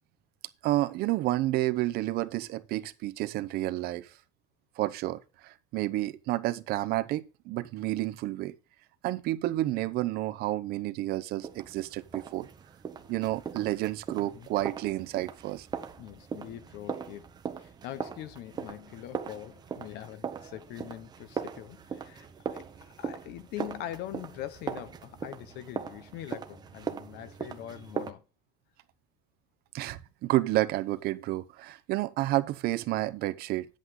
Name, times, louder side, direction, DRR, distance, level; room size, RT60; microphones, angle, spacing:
voice 1, 0.6-4.1 4.8-8.5 9.0-12.5 13.1-15.7 29.7-33.7, right 16 dB, 50° right, 0.8 m, -30 dB
sound 1, 11.4-28.1, right 6 dB, 20° right, 1.0 m, -40 dB
voice 2, 16.0-17.3 17.6-28.2, left 12 dB, 55° left, 1.0 m, -43 dB
9.8 x 8.3 x 3.8 m
cardioid pair, 165°, 20 cm